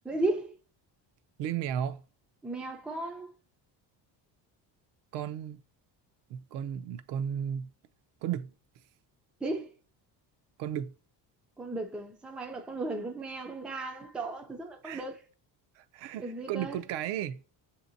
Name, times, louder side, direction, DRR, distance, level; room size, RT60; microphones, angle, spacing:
voice 1, 0.0-0.6 2.4-3.3 9.4-9.7 11.6-15.2 16.2-16.8, right 2 dB, 5° right, 0.3 m, -35 dB
voice 2, 1.4-2.0 5.1-5.6 6.3-7.7 8.2-8.5 10.6-10.9 14.8-15.0 15.8-17.4, right 9 dB, 85° right, 0.6 m, -34 dB
7.0 x 2.8 x 2.5 m
cardioid pair, 160°, 41 cm